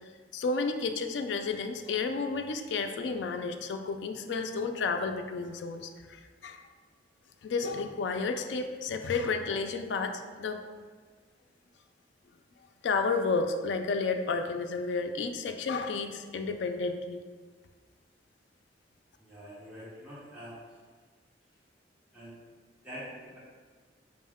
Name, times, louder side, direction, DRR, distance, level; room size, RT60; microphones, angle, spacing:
voice 1, 0.3-6.7 7.4-10.6 12.8-17.2, left 4 dB, 70° left, 6 dB, 0.4 m, -31 dB
voice 2, 19.2-20.8 22.1-22.4 22.8-23.4, equal, 5° right, -11 dB, 1.1 m, -45 dB
5.4 x 2.1 x 3.5 m, 1.5 s
head